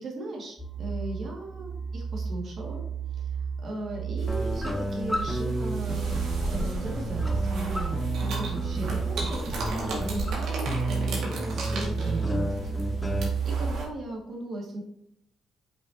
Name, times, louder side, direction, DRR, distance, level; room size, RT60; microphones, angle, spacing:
voice 1, 0.0-2.8 3.1-3.3 3.6-14.8, right 2 dB, 55° right, -1 dB, 2.1 m, -37 dB
sound 1, 0.6-13.7, right 6 dB, 20° right, 2.5 m, -32 dB
sound 2, 4.2-13.8, right 2 dB, 80° right, 2.0 m, -36 dB
sound 3, 4.3-13.3, left 1 dB, 10° left, 1.1 m, -33 dB
6.9 x 5.7 x 2.9 m, 0.76 s
cardioid pair, 90°, 0 cm